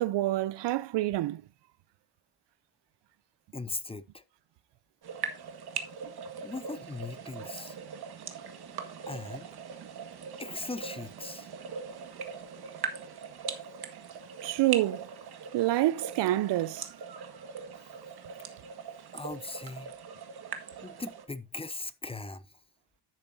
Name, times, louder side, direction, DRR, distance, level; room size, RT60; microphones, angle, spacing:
voice 1, 0.0-1.4 14.4-15.0 15.5-16.9, right 15 dB, 75° right, 0.6 m, -27 dB
voice 2, 3.5-4.2 6.4-7.8 9.1-9.5 10.4-11.5 19.1-19.9 20.8-22.5, left 3 dB, 15° left, 0.8 m, -39 dB
sound 1, 5.0-21.3, right 6 dB, 60° right, 1.8 m, -41 dB
10.5 x 8.5 x 2.6 m
cardioid pair, 90°, 42 cm